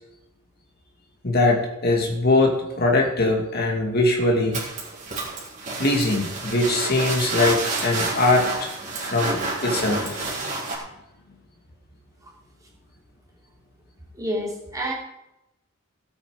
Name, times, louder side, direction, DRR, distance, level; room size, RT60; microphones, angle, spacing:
voice 1, 1.2-4.6 5.8-8.7 9.0-10.5, left 2 dB, 45° left, 1 dB, 2.3 m, -22 dB
sound 1, 4.5-10.8, right 3 dB, 35° right, 4.1 m, -29 dB
voice 2, 14.1-14.9, equal, 15° right, -3 dB, 3.2 m, -28 dB
17.0 x 8.6 x 5.0 m, 0.88 s
head